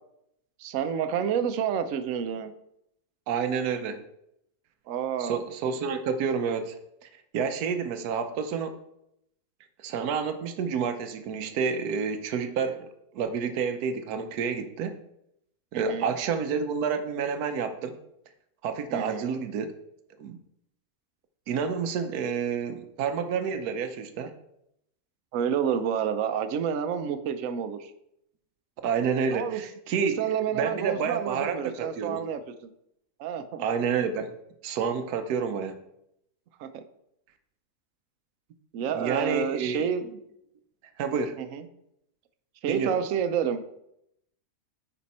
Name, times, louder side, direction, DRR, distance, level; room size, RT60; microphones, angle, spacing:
voice 1, 0.6-2.5 4.9-5.4 15.7-16.1 18.9-19.3 25.3-27.9 29.3-29.6 30.0-32.7 33.2-33.6 36.6-36.8 38.7-40.1 41.4-41.7 42.6-43.6, right 8 dB, 65° right, 10 dB, 1.0 m, -29 dB
voice 2, 3.3-4.0 5.2-6.8 7.3-8.7 9.8-12.9 13.1-15.0 15.7-18.0 18.6-19.7 20.2-20.4 21.5-24.3 28.8-30.2 30.6-32.2 33.6-34.3 34.6-35.8 38.9-39.9 41.0-41.4 42.7-43.0, right 6 dB, 85° right, 8 dB, 1.2 m, -29 dB
9.9 x 5.1 x 4.2 m, 0.78 s
omnidirectional pair, 1.6 m